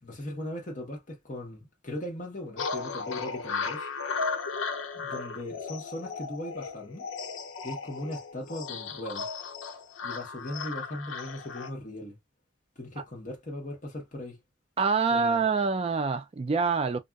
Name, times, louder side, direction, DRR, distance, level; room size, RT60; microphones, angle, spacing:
voice 1, 0.0-3.9 4.9-7.1 7.6-9.3 10.0-12.2 12.8-14.4 15.1-15.4, left 1 dB, 40° left, 1.1 m, -38 dB
sound 1, 2.6-11.7, left 5 dB, 85° left, 0.6 m, -35 dB
voice 2, 14.8-17.0, right 5 dB, 30° right, 0.3 m, -26 dB
2.6 x 2.4 x 2.3 m
head